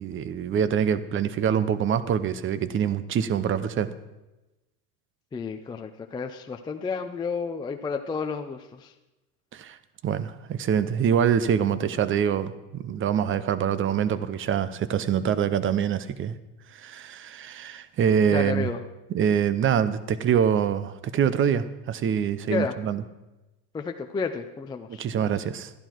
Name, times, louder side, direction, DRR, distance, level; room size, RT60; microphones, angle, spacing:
voice 1, 0.0-3.9 9.5-9.8 10.0-16.3 16.7-18.7 19.1-23.0 25.0-25.7, right 8 dB, 30° right, 15 dB, 0.6 m, -25 dB
voice 2, 5.3-8.9 18.2-18.8 22.5-22.8 23.7-25.3, left 5 dB, 10° left, 5 dB, 0.4 m, -31 dB
13.0 x 11.0 x 4.5 m, 1.0 s
supercardioid pair, 115°, 44 cm